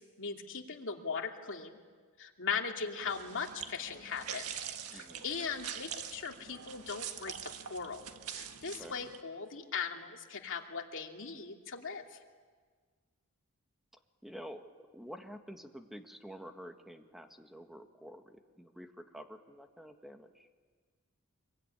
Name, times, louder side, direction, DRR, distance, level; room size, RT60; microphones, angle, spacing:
voice 1, 0.0-1.8 2.2-4.5 4.9-7.3 7.7-8.0 8.3-12.2, left 6 dB, 60° left, 2 dB, 2.7 m, -39 dB
sound 1, 3.0-9.2, right 8 dB, 85° right, 1.6 m, -44 dB
voice 2, 4.9-5.2 8.8-9.0 14.2-20.5, equal, ahead, 5 dB, 1.7 m, -49 dB
25.5 x 23.5 x 9.9 m, 1.5 s
head